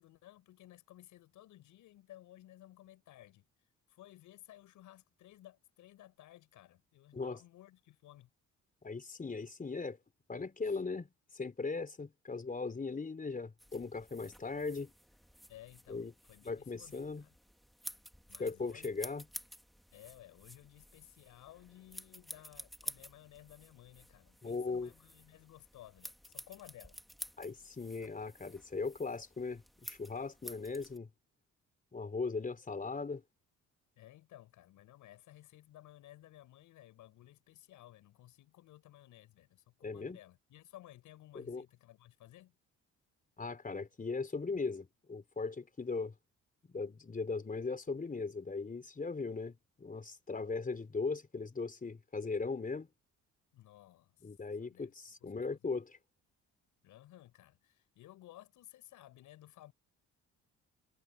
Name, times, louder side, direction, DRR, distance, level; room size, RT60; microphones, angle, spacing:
voice 1, 0.0-3.5 3.9-8.3 10.6-10.8 15.5-17.3 18.3-19.0 19.9-27.0 34.0-42.5 53.5-54.1 54.6-54.9 55.4-55.7 56.8-59.7, left 14 dB, 85° left, 6.2 m, -57 dB
voice 2, 8.8-10.0 10.3-14.9 15.9-16.1 16.4-17.2 18.4-19.2 24.4-24.9 27.4-31.1 31.9-33.2 39.8-40.2 41.3-41.6 43.4-46.1 46.7-52.9 54.2-56.0, left 4 dB, 30° left, 4.4 m, -38 dB
sound 1, 13.6-31.0, equal, ahead, 2.1 m, -51 dB
cardioid pair, 90°, 30 cm